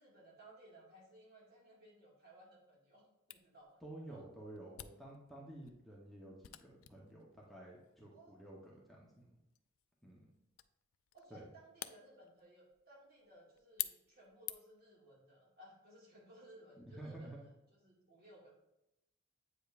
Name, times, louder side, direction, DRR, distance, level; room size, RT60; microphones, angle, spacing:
voice 1, 0.0-4.2 8.1-8.4 11.1-18.5, right 1 dB, 50° right, -4 dB, 2.1 m, -61 dB
Camera, 3.3-14.9, left 14 dB, 80° left, 0.3 m, -51 dB
voice 2, 3.8-6.3 6.6-9.3 10.0-10.3 11.3-11.5 16.8-17.4, right 1 dB, ahead, -5 dB, 0.9 m, -52 dB
8.0 x 5.1 x 2.5 m, 0.88 s
head